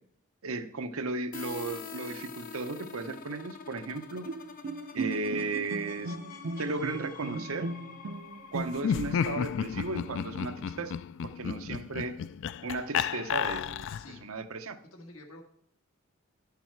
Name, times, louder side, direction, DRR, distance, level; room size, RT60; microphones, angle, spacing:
voice 1, 0.4-4.3 4.9-6.2 6.6-7.7 8.5-10.9 11.2-12.2 12.6-13.9 14.2-14.8, right 3 dB, 85° right, 9 dB, 0.8 m, -35 dB
sound 1, 1.3-10.9, left 5 dB, 45° left, 0.8 m, -46 dB
Bowed string instrument, 4.3-9.1, right 3 dB, 60° right, 0.5 m, -37 dB
Laughter, 8.8-14.2, left 8 dB, 60° left, 0.3 m, -32 dB
voice 2, 13.3-14.2 14.6-15.4, left 2 dB, 90° left, 3 dB, 1.8 m, -52 dB
11.0 x 6.9 x 4.5 m, 0.67 s
head